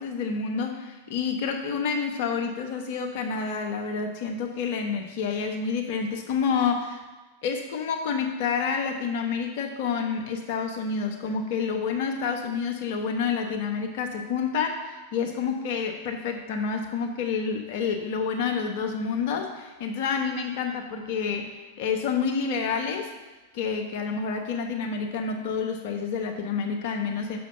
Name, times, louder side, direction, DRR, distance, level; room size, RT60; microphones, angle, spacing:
voice 1, 0.0-7.0 7.4-23.1 23.5-27.4, left 5 dB, 55° left, 3 dB, 1.2 m, -28 dB
6.4 x 5.0 x 6.7 m, 1.2 s
figure-of-eight pair, 90°, 0 cm